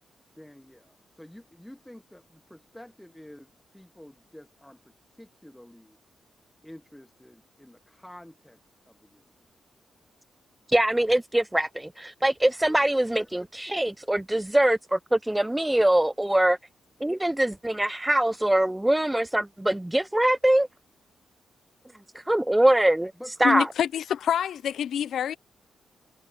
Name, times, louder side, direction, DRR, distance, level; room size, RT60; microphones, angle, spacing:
voice 1, 0.4-4.8 5.1-6.0 6.6-8.6 8.9-9.2 12.8-13.3 23.2-23.7, left 1 dB, 5° left, 1.2 m, -49 dB
voice 2, 10.7-16.6 17.0-20.7 22.3-23.1 23.4-23.7, right 1 dB, 10° right, 0.4 m, -23 dB
voice 3, 23.4-25.4, left 9 dB, 80° left, 0.5 m, -26 dB
cardioid pair, 60°, 0 cm